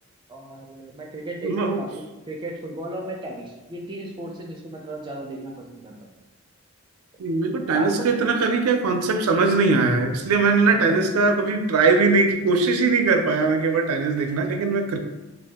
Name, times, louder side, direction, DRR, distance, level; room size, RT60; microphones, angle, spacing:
voice 1, 0.3-6.1 7.7-8.1 10.7-11.0, right 1 dB, 20° right, 0 dB, 0.4 m, -35 dB
voice 2, 1.4-1.8 7.2-15.0, right 4 dB, 85° right, 5 dB, 0.4 m, -20 dB
2.6 x 2.3 x 3.4 m, 1.1 s
head